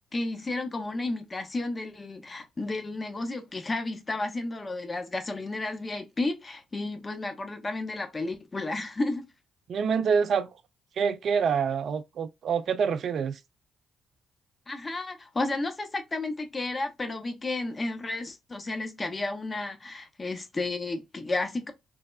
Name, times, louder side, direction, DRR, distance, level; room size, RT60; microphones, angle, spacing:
voice 1, 0.1-9.3 14.7-21.7, left 2 dB, 30° left, 0.7 m, -32 dB
voice 2, 9.7-10.5 11.0-13.4, right 6 dB, 60° right, 0.3 m, -26 dB
3.2 x 2.0 x 2.2 m
hypercardioid pair, 45°, 0 cm